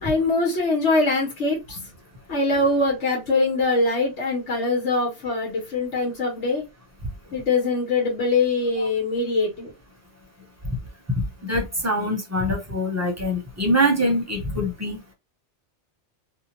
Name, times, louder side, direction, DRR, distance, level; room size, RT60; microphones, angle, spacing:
voice 1, 0.0-1.9 2.3-6.6 7.3-9.7, left 3 dB, 90° left, -2 dB, 1.3 m, -23 dB
voice 2, 11.2-15.0, equal, 15° right, 1 dB, 0.7 m, -24 dB
2.7 x 2.2 x 2.8 m, 0.23 s
omnidirectional pair, 1.2 m